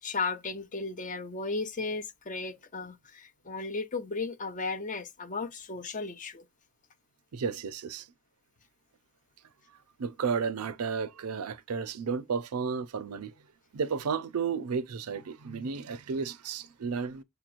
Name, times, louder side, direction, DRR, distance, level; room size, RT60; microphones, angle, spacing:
voice 1, 0.0-6.4, left 3 dB, 35° left, 0.6 m, -35 dB
voice 2, 7.3-8.1 10.0-13.3 13.7-17.2, right 5 dB, 90° right, 0.5 m, -33 dB
6.7 x 3.0 x 2.5 m
head